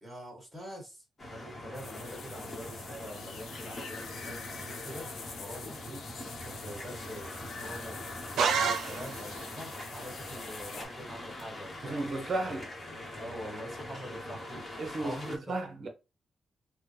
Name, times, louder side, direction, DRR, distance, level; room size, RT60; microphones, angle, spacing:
voice 1, 0.0-6.1 6.4-8.1 8.5-12.0 12.4-12.5 13.1-14.6 15.0-15.4, equal, 5° right, 1.7 m, -45 dB
sound 1, 1.2-15.4, left 1 dB, 30° left, 1.0 m, -43 dB
sound 2, 1.7-10.8, left 4 dB, 70° left, 0.9 m, -45 dB
sound 3, 8.4-9.5, right 6 dB, 90° right, 0.5 m, -28 dB
voice 2, 11.8-12.7 14.8-15.9, right 2 dB, 45° right, 0.8 m, -34 dB
3.6 x 2.1 x 3.3 m
cardioid pair, 130°, 0 cm